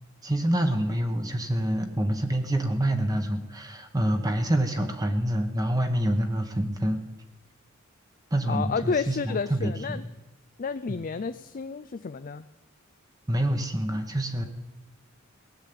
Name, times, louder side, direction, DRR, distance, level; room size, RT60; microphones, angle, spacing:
voice 1, 0.2-7.0 8.3-10.1 10.9-11.0 13.3-14.5, right 1 dB, 20° right, 5 dB, 1.2 m, -27 dB
voice 2, 8.5-10.0 10.6-12.4, left 5 dB, 40° left, 11 dB, 0.4 m, -31 dB
18.5 x 7.4 x 8.5 m, 1.1 s
head